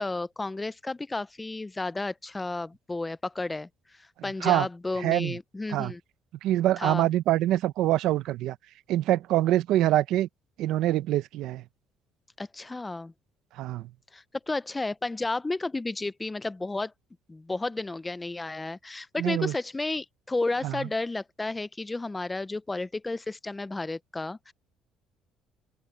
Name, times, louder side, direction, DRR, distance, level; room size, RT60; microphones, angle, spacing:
voice 1, 0.0-3.7 4.2-6.0 6.8-7.1 12.4-13.1 14.1-16.9 17.3-24.5, left 2 dB, 15° left, 0.4 m, -32 dB
voice 2, 5.0-5.4 5.7-5.9 6.4-8.6 8.9-10.3 10.6-11.6 13.5-13.9 19.2-19.5 20.6-20.9, right 14 dB, 75° right, 0.8 m, -25 dB
open air
cardioid pair, 130°, 0 cm